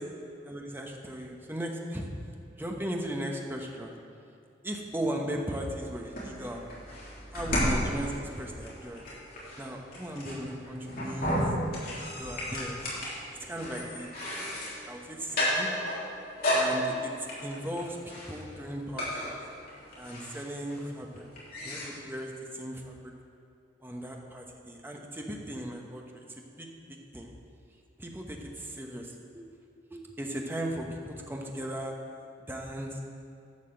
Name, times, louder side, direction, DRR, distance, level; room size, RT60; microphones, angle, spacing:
voice 1, 0.5-2.1 2.6-4.0 4.6-6.6 7.3-9.0 9.6-11.4 12.1-12.8 13.4-14.1 14.9-15.7 16.5-17.1 17.4-19.3 20.0-21.3 21.6-22.9 23.8-26.2 26.6-26.7 27.1-27.3 28.0-29.4 29.9-31.9 32.5-33.0, equal, 10° right, 1 dB, 1.1 m, -37 dB
sound 1, 5.7-21.9, equal, 50° left, 3.1 m, -34 dB
11.5 x 5.9 x 7.6 m, 2.7 s
head